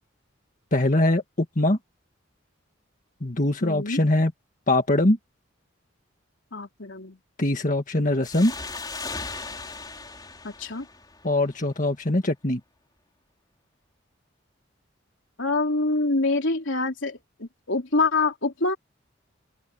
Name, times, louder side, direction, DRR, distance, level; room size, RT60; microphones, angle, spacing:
voice 1, 0.7-1.8 3.2-4.3 4.7-5.2 7.4-8.5 11.2-12.6, left 1 dB, 40° left, 1.8 m, -22 dB
voice 2, 3.6-4.0 6.5-7.2 10.4-10.9 15.4-18.8, left 3 dB, 75° left, 3.4 m, -26 dB
sound 1, 8.2-11.6, left 3 dB, 20° left, 3.7 m, -37 dB
open air
head